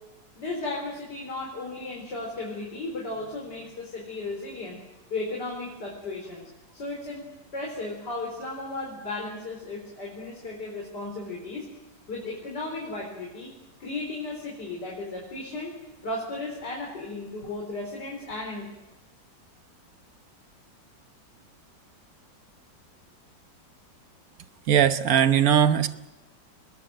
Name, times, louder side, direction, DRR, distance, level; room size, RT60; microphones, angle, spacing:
voice 1, 0.3-4.8 5.1-7.2 7.5-11.7 12.1-13.5 13.8-15.7 16.0-18.7, left 2 dB, 65° left, -2 dB, 4.8 m, -35 dB
voice 2, 24.7-25.9, right 9 dB, 55° right, 11 dB, 1.3 m, -19 dB
24.5 x 20.5 x 7.7 m, 1.0 s
omnidirectional pair, 2.0 m